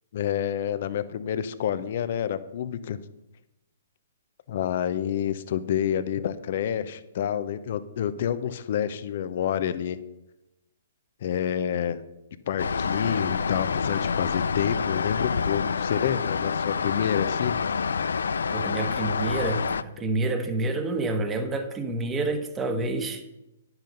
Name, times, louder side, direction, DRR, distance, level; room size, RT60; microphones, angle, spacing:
voice 1, 0.1-3.0 4.5-10.0 11.2-12.0 12.5-17.6, left 9 dB, 55° left, 13 dB, 0.8 m, -28 dB
sound 1, 12.6-19.8, left 5 dB, 75° left, 0.4 m, -27 dB
voice 2, 18.5-23.2, right 2 dB, 15° right, 6 dB, 1.3 m, -28 dB
10.5 x 8.2 x 5.3 m, 0.96 s
hypercardioid pair, 130°, 0 cm